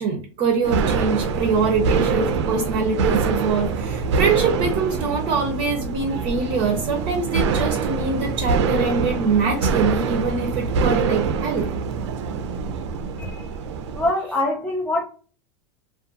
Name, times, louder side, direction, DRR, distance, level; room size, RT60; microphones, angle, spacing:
voice 1, 0.0-11.7, right 5 dB, 40° right, 0.6 m, -23 dB
sound 1, 0.6-14.1, right 5 dB, 85° right, 0.5 m, -24 dB
voice 2, 13.9-15.0, left 1 dB, 5° left, 0.4 m, -24 dB
2.5 x 2.3 x 2.5 m
supercardioid pair, 135°, 14 cm